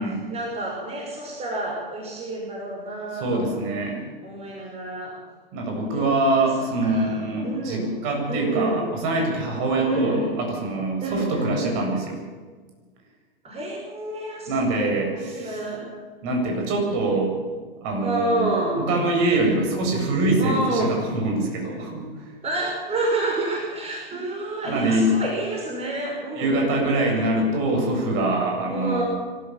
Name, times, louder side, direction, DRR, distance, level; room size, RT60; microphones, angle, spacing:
voice 1, 0.3-3.5 4.2-5.1 5.9-6.5 6.8-7.9 8.3-8.8 9.8-10.4 11.0-11.8 13.4-15.9 18.0-18.9 20.4-20.9 22.4-26.9 28.7-29.0, right 2 dB, 20° right, -1 dB, 5.9 m, -29 dB
voice 2, 3.1-4.0 5.5-12.2 14.5-15.6 16.2-17.3 17.8-22.1 24.6-25.1 26.4-29.0, right 2 dB, 45° right, 1 dB, 7.7 m, -24 dB
25.5 x 13.5 x 7.5 m, 1.5 s
hypercardioid pair, 105°, 29 cm